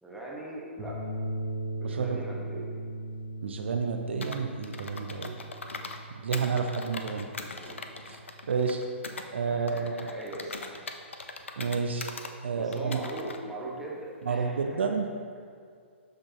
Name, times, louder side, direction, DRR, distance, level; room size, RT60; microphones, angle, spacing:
voice 1, 0.0-1.0 1.8-2.7 7.3-7.8 9.5-10.8 12.6-14.8, right 1 dB, ahead, -5 dB, 1.4 m, -40 dB
sound 1, 0.8-9.3, right 1 dB, 20° right, 1.9 m, -39 dB
voice 2, 1.8-2.2 3.4-5.4 6.2-7.3 8.1-8.2 8.5-8.8 9.3-9.9 11.6-12.1 12.4-13.0 14.3-15.1, right 5 dB, 65° right, 5 dB, 0.5 m, -30 dB
Computer keyboard, 4.2-6.0 6.3-9.3 9.7-12.3 12.7-13.4, left 3 dB, 75° left, 0.6 m, -41 dB
12.5 x 5.2 x 3.0 m, 2.2 s
figure-of-eight pair, 120°, 7 cm